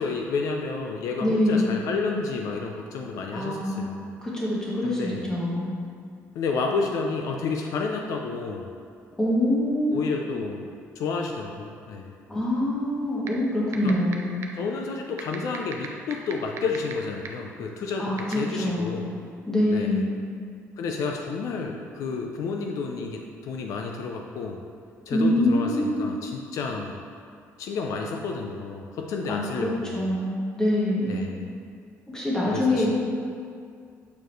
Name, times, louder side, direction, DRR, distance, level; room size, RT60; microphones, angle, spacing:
voice 1, 0.0-4.1 4.8-5.2 6.3-8.7 9.9-10.7 11.0-12.1 13.8-14.0 14.5-19.0 19.7-20.0 20.8-24.7 25.1-27.0 27.6-30.1 31.0-31.5 32.5-32.9, left 4 dB, 75° left, 2 dB, 0.5 m, -30 dB
voice 2, 1.2-1.7 3.3-3.8 4.2-5.7 9.2-10.0 12.3-14.4 18.0-19.0 19.5-20.2 25.1-26.1 29.3-31.2 32.1-32.9, left 1 dB, 10° left, -6 dB, 1.5 m, -25 dB
sound 1, 13.3-13.4 13.7-14.1 14.4-14.5 15.2-16.9 17.3-17.4 18.2-18.3, right 9 dB, 55° right, 0.5 m, -33 dB
7.1 x 4.5 x 3.1 m, 2.3 s
cardioid pair, 135°, 6 cm